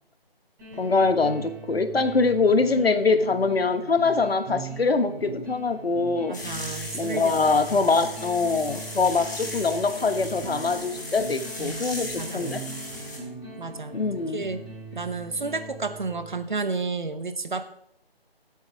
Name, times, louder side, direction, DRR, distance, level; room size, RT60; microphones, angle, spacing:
sound 1, 0.6-16.5, right 2 dB, 10° right, 6.2 m, -40 dB
voice 1, 0.8-6.4 6.9-12.7 13.9-14.4, left 4 dB, 70° left, 10 dB, 1.2 m, -23 dB
sound 2, 6.3-13.2, left 1 dB, 20° left, 1.5 m, -37 dB
voice 2, 6.3-7.4 7.7-7.8 11.6-11.8 12.1-12.6 13.6-14.0 14.3-14.6 14.9-17.7, right 4 dB, 50° right, 10 dB, 1.0 m, -31 dB
19.5 x 8.1 x 3.5 m, 0.72 s
figure-of-eight pair, 175°, 31 cm